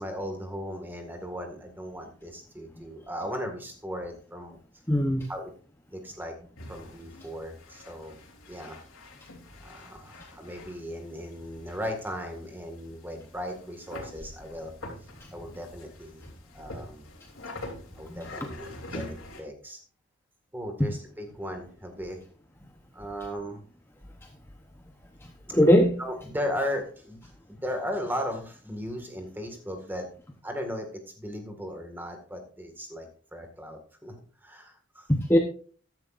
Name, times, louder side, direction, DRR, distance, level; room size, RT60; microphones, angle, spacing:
voice 1, 0.0-4.6 5.3-5.5 5.9-6.3 6.7-8.2 8.5-8.8 9.6-14.7 15.3-16.2 16.5-17.1 18.0-19.0 19.4-19.8 20.5-22.2 22.9-23.6 26.0-27.2 27.5-30.1 30.4-30.9 31.2-34.1 34.4-35.1, equal, 10° right, 4 dB, 1.8 m, -36 dB
voice 2, 4.9-5.3 18.1-18.2 25.5-26.0 35.1-35.4, equal, 10° left, 2 dB, 0.8 m, -20 dB
sound 1, 6.6-19.4, left 1 dB, 90° left, 3.2 m, -45 dB
14.0 x 10.5 x 2.5 m, 0.42 s
head